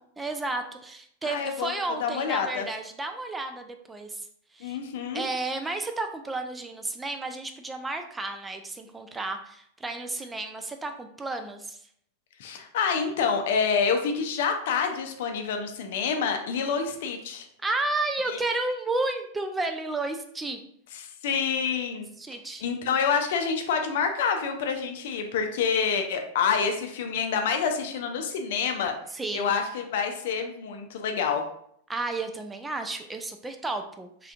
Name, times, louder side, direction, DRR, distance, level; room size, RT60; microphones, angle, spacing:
voice 1, 0.2-4.3 4.5-4.8 5.1-11.8 17.6-20.6 22.2-22.6 29.1-29.5 31.9-34.3, right 2 dB, 10° right, 6 dB, 0.3 m, -32 dB
voice 2, 1.2-1.7 2.0-2.6 4.6-5.2 12.4-17.5 18.3-18.4 21.2-22.1 22.6-28.9 29.3-31.4, left 6 dB, 55° left, 5 dB, 0.5 m, -27 dB
3.6 x 3.2 x 2.4 m, 0.68 s
figure-of-eight pair, 90°, 0 cm